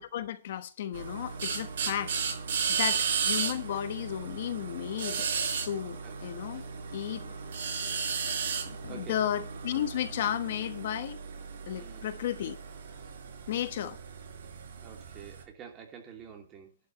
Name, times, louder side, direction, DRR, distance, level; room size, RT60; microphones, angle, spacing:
voice 1, 0.0-2.1 2.7-5.3 5.6-6.6 6.9-7.3 8.5-11.2 11.7-12.6 13.5-14.0, left 10 dB, 50° left, 1.2 m, -34 dB
sound 1, 0.9-15.4, right 6 dB, 65° right, 5.7 m, -35 dB
voice 2, 8.5-9.2 11.7-12.1 14.8-16.8, right 7 dB, 20° right, 2.7 m, -49 dB
11.5 x 5.0 x 8.7 m
hypercardioid pair, 165°, 0 cm